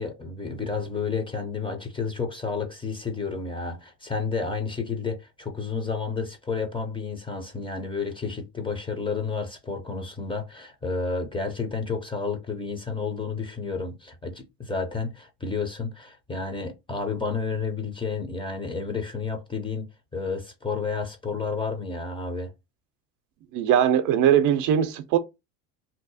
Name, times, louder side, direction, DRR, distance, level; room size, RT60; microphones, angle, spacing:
voice 1, 0.0-19.9 20.1-22.5, left 4 dB, 15° left, 0.6 m, -31 dB
voice 2, 23.5-25.2, right 9 dB, 55° right, 0.6 m, -20 dB
2.8 x 2.0 x 4.0 m
supercardioid pair, 100°, 38 cm